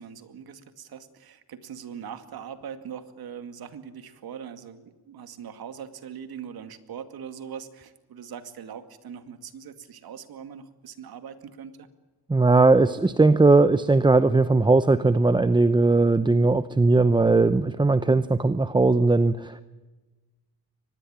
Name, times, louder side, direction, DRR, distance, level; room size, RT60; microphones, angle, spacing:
voice 1, 0.0-11.9, right 8 dB, 65° right, 9 dB, 2.3 m, -41 dB
voice 2, 12.3-19.6, right 3 dB, 10° right, 13 dB, 0.7 m, -19 dB
24.0 x 20.0 x 8.8 m, 1.2 s
cardioid pair, 105°, 39 cm